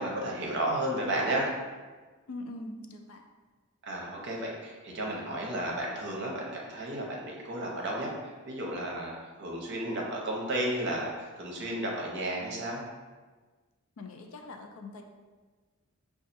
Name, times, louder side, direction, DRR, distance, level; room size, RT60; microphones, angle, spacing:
voice 1, 0.0-1.5 3.8-12.8, right 1 dB, 50° right, -2 dB, 0.7 m, -33 dB
voice 2, 2.3-3.2 14.0-15.0, left 2 dB, 60° left, 4 dB, 0.4 m, -42 dB
5.4 x 2.4 x 2.6 m, 1.3 s
head